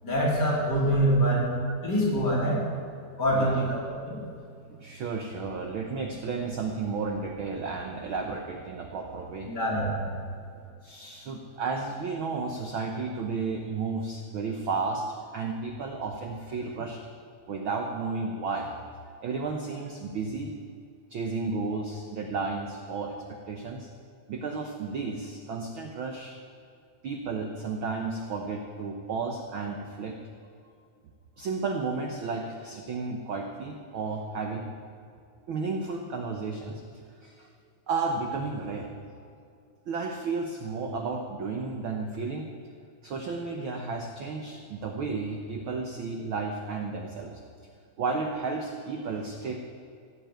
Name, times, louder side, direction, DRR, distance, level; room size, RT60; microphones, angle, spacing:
voice 1, 0.0-1.5 1.8-2.6 3.2-3.8 4.0-4.2 9.5-10.1, right 1 dB, 35° left, -6 dB, 4.7 m, -25 dB
voice 2, 3.3-3.6 4.7-9.5 10.8-15.1 15.3-17.0 17.5-18.7 19.2-20.5 21.1-23.9 24.3-26.3 27.0-30.2 31.4-34.7 35.5-36.8 37.2-37.5 37.9-38.9 39.9-42.5 43.0-47.4 48.0-49.6, right 4 dB, 65° right, 3 dB, 1.3 m, -33 dB
15.5 x 8.1 x 9.0 m, 2.4 s
omnidirectional pair, 3.4 m